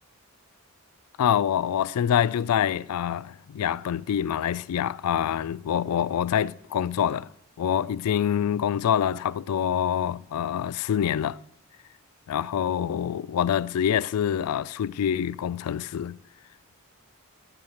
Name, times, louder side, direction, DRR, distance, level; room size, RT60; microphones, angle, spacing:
voice 1, 1.2-7.3 7.6-11.4 12.3-16.2, left 9 dB, 80° left, 0.3 m, -26 dB
10.5 x 8.6 x 6.4 m
head